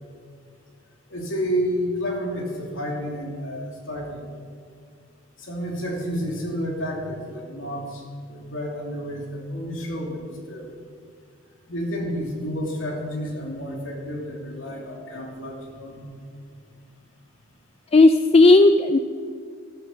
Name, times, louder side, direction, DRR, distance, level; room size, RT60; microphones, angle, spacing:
voice 1, 1.1-4.2 5.4-8.0 8.3-10.7 11.7-16.1, equal, 75° left, 0 dB, 2.8 m, -30 dB
voice 2, 17.9-19.0, left 2 dB, 30° left, 9 dB, 0.4 m, -14 dB
13.5 x 13.0 x 5.7 m, 2.1 s
head